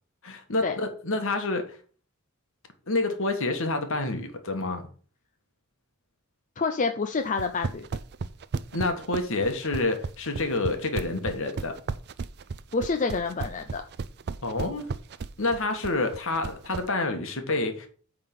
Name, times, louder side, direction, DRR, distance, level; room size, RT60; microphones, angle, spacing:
voice 1, 0.2-1.8 2.9-4.9 8.7-11.7 14.4-14.9 15.4-17.9, left 2 dB, 60° left, 1.5 m, -28 dB
voice 2, 6.6-7.9 12.7-13.8, left 4 dB, 35° left, 0.5 m, -28 dB
sound 1, 7.3-16.9, right 4 dB, 45° right, 0.4 m, -34 dB
8.8 x 3.8 x 5.9 m
head